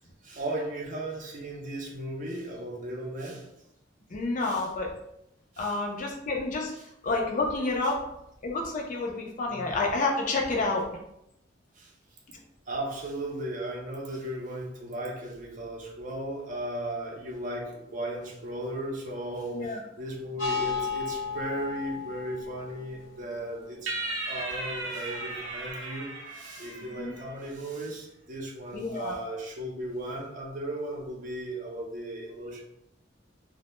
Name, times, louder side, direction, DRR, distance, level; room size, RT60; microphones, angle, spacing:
voice 1, 0.2-3.5 4.4-4.7 5.5-5.8 9.5-9.7 11.7-11.9 12.7-32.7, right 1 dB, 40° right, -1 dB, 0.5 m, -36 dB
voice 2, 4.1-4.9 5.6-6.7 7.0-8.0 8.4-10.9 12.3-12.4 19.5-19.8 27.0-27.2 28.7-29.2, left 3 dB, 40° left, 0 dB, 0.4 m, -29 dB
sound 1, 20.4-25.7, left 5 dB, 85° left, 0.7 m, -36 dB
sound 2, 23.9-27.4, right 2 dB, 90° right, 0.5 m, -36 dB
2.0 x 2.0 x 3.0 m, 0.80 s
head